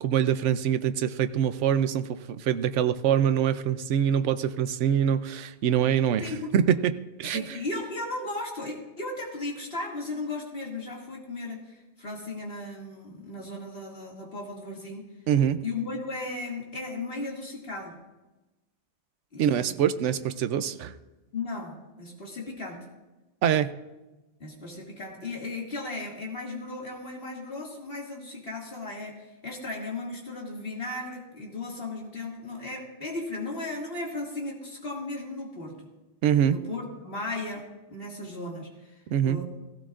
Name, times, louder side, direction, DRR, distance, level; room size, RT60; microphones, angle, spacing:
voice 1, 0.0-6.9 7.2-7.6 15.3-15.6 19.4-21.0 23.4-23.7 36.2-36.6 39.1-39.4, right 9 dB, 80° right, 12 dB, 0.9 m, -24 dB
voice 2, 7.2-11.6 12.0-15.1 15.6-18.0 19.3-19.8 20.1-20.2 21.3-22.8 24.4-35.8 36.5-39.4, left 2 dB, 55° left, -2 dB, 2.4 m, -36 dB
16.0 x 15.5 x 2.5 m, 1.1 s
omnidirectional pair, 1.2 m